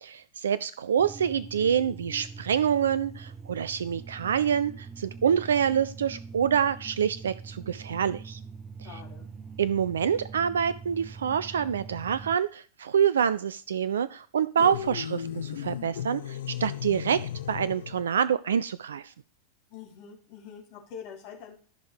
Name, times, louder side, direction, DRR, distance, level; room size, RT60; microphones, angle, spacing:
voice 1, 0.0-8.4 8.9-9.0 9.6-17.2 17.5-19.1, right 8 dB, 65° right, 16 dB, 0.3 m, -26 dB
sound 1, 1.0-12.4, right 5 dB, 15° right, 0.6 m, -43 dB
voice 2, 8.8-9.3 19.7-21.5, left 7 dB, 45° left, -1 dB, 3.1 m, -44 dB
sound 2, 14.6-18.1, left 9 dB, 60° left, 0.6 m, -35 dB
14.0 x 5.2 x 3.2 m, 0.42 s
figure-of-eight pair, 90°, 0 cm